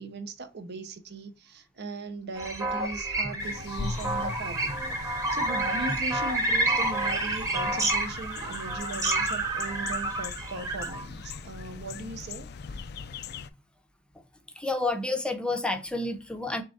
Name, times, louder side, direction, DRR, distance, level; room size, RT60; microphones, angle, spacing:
voice 1, 0.0-4.7 5.0-12.5 12.7-12.8, right 3 dB, 60° right, 0.7 m, -39 dB
sound 1, 2.4-11.0, right 2 dB, 20° right, 1.0 m, -29 dB
sound 2, 3.4-13.5, left 5 dB, 60° left, 0.4 m, -40 dB
voice 2, 14.6-16.6, left 2 dB, 5° left, 0.6 m, -29 dB
3.7 x 3.3 x 4.1 m
head